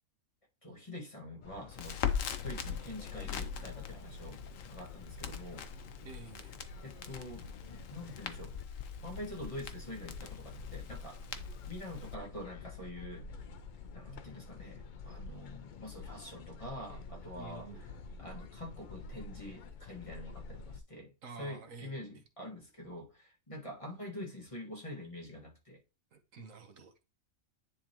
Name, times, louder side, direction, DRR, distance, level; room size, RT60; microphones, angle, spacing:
voice 1, 0.6-2.0 2.4-5.7 6.8-8.5 9.0-11.3 11.7-13.2 13.9-17.7 18.2-21.1 21.4-25.8, left 1 dB, 25° left, 1.7 m, -46 dB
sound 1, 1.4-20.8, left 5 dB, 55° left, 0.5 m, -48 dB
Crackle, 1.7-12.1, left 7 dB, 75° left, 1.2 m, -41 dB
voice 2, 6.0-6.6 17.3-17.8 21.2-22.2 26.1-27.0, right 4 dB, 70° right, 1.4 m, -50 dB
10.0 x 3.8 x 3.0 m
omnidirectional pair, 1.4 m